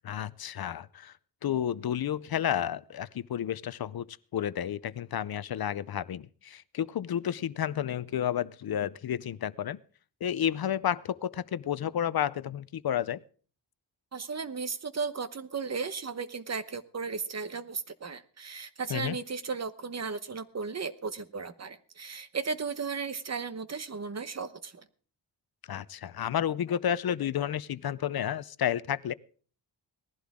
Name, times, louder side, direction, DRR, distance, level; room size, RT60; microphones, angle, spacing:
voice 1, 0.0-1.1 1.4-4.1 4.3-9.8 10.2-13.2 18.9-19.1 25.7-29.1, left 10 dB, 55° left, 17 dB, 0.6 m, -31 dB
voice 2, 14.1-24.8, right 5 dB, 35° right, 12 dB, 1.0 m, -35 dB
19.0 x 15.0 x 3.6 m, 0.43 s
wide cardioid pair, 170°, 44 cm